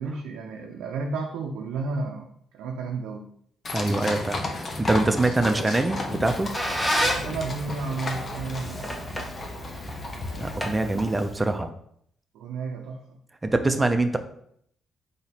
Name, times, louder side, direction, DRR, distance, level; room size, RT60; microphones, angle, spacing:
voice 1, 0.0-2.3 2.5-3.3 7.1-8.9 12.3-13.2 13.6-13.9, right 4 dB, 85° right, 1 dB, 0.5 m, -32 dB
sound 1, 3.6-10.6, left 2 dB, 40° left, 0.7 m, -34 dB
sound 2, 3.7-4.2 5.2-5.8 6.8-7.2, left 2 dB, 85° left, 1.1 m, -38 dB
voice 2, 3.7-4.4 4.8-6.5 10.4-11.7 13.4-14.2, right 2 dB, 15° right, 7 dB, 0.5 m, -24 dB
Squeak, 6.0-11.5, equal, 5° left, 0.9 m, -31 dB
4.0 x 2.9 x 4.2 m, 0.68 s
cardioid pair, 90°, 0 cm